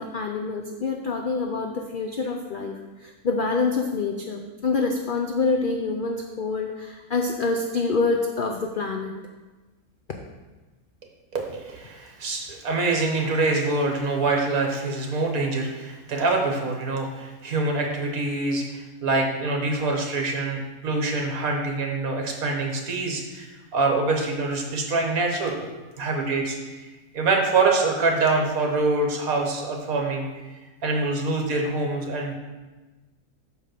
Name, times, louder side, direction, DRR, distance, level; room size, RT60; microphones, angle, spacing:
voice 1, 0.0-2.7 3.0-9.2, left 4 dB, 65° left, 2 dB, 0.5 m, -26 dB
voice 2, 11.3-26.9 27.1-30.3 30.8-32.3, right 3 dB, 65° right, 2 dB, 1.6 m, -25 dB
5.5 x 5.4 x 6.5 m, 1.2 s
omnidirectional pair, 1.6 m